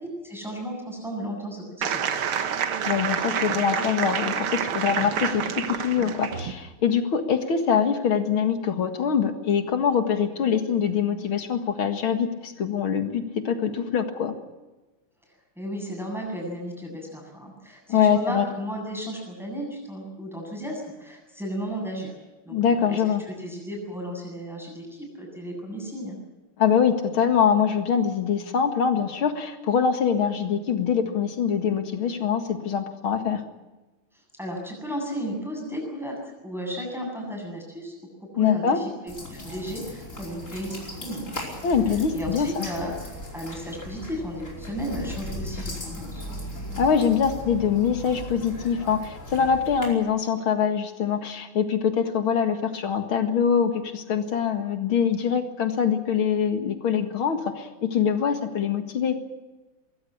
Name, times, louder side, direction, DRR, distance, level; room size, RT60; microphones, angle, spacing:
voice 1, 0.0-2.0 15.6-22.1 22.4-26.2 34.4-36.2 36.4-37.9 38.3-41.3 42.1-46.2, equal, ahead, 0 dB, 7.9 m, -34 dB
sound 1, 1.8-6.5, right 7 dB, 85° right, 2.2 m, -28 dB
voice 2, 2.9-14.3 17.9-18.5 22.5-23.2 26.6-33.4 38.4-38.8 41.6-42.7 46.8-59.2, left 7 dB, 75° left, 7 dB, 2.7 m, -24 dB
sound 2, 39.1-49.9, left 1 dB, 35° left, 5.3 m, -37 dB
22.5 x 16.0 x 9.9 m, 1.1 s
omnidirectional pair, 2.3 m